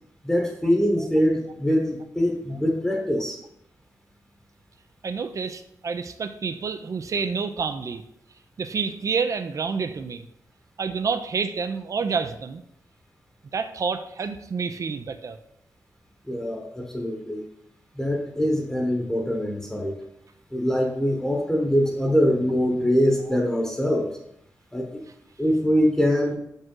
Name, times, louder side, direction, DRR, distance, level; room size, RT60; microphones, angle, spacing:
voice 1, 0.2-3.4 16.3-17.4 18.0-20.0 20.5-24.1 24.7-25.0 25.4-26.4, equal, 5° left, 1 dB, 1.0 m, -23 dB
voice 2, 5.0-8.0 8.6-10.3 10.8-12.6 13.5-15.4, right 5 dB, 50° right, 10 dB, 0.5 m, -28 dB
6.1 x 5.3 x 3.7 m, 0.77 s
wide cardioid pair, 105°, 7 cm